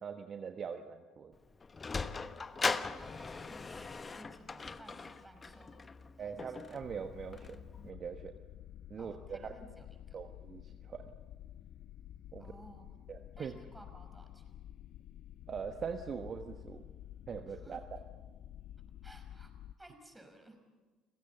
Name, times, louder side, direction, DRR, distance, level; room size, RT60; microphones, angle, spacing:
voice 1, 0.0-1.3 6.2-7.6 7.8-8.3 8.9-9.5 10.1-11.1 12.3-12.5 13.1-13.5 15.5-16.9 17.3-18.0, right 6 dB, 45° right, 6 dB, 1.3 m, -42 dB
Sliding door, 1.3-7.9, left 4 dB, 30° left, 1.1 m, -40 dB
voice 2, 2.6-5.8 6.2-6.5 9.0-10.2 12.4-13.1 13.4-14.5 17.5-17.8 19.0-20.6, right 1 dB, 10° right, 5 dB, 5.7 m, -57 dB
sound 1, 6.8-19.7, left 11 dB, 60° left, 0.6 m, -51 dB
29.5 x 16.5 x 7.2 m, 1.3 s
hypercardioid pair, 55°, 0 cm